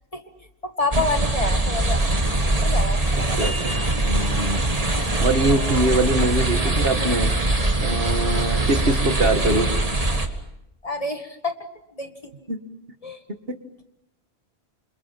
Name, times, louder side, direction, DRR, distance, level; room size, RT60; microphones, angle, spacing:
voice 1, 0.6-2.0 2.6-3.6 5.5-6.0 10.8-11.5 11.9-12.5 13.0-13.2, left 2 dB, 35° left, 6 dB, 2.0 m, -28 dB
sound 1, 0.9-10.3, right 2 dB, 35° right, 2.1 m, -22 dB
voice 2, 4.0-4.6 5.2-7.4 7.8-9.7 12.5-12.6, right 2 dB, 60° right, 7 dB, 2.0 m, -23 dB
27.5 x 27.0 x 6.0 m, 0.82 s
omnidirectional pair, 1.1 m